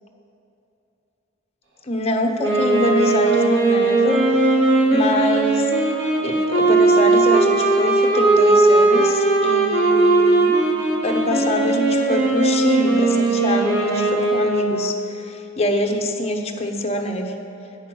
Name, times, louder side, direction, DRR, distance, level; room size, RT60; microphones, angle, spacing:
voice 1, 1.8-5.7 6.2-10.5 11.0-17.3, left 1 dB, 30° left, 3 dB, 0.7 m, -25 dB
Wind instrument woodwind instrument, 2.4-14.8, right 2 dB, 65° right, 2.2 m, -18 dB
8.9 x 5.7 x 6.0 m, 2.8 s
head